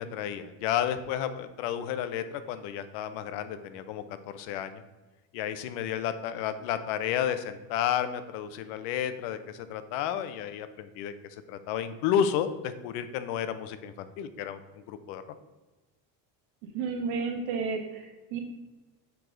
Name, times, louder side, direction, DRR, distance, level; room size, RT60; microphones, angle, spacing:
voice 1, 0.0-4.0 4.3-4.8 5.3-15.2, left 9 dB, 90° left, 11 dB, 0.7 m, -32 dB
voice 2, 16.6-18.4, right 5 dB, 85° right, 2 dB, 1.5 m, -32 dB
7.0 x 4.8 x 3.8 m, 1.2 s
cardioid pair, 170°, 42 cm